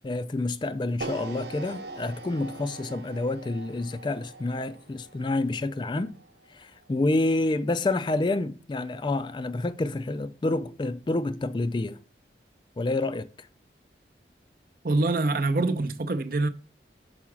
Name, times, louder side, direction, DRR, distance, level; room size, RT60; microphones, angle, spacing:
voice 1, 0.0-6.1 6.5-12.0 12.8-13.5, left 2 dB, 25° left, 0.3 m, -28 dB
sound 1, 1.0-7.2, right 2 dB, 70° right, 0.9 m, -42 dB
voice 2, 14.8-16.5, right 2 dB, 55° right, 0.6 m, -25 dB
5.7 x 4.8 x 6.1 m
head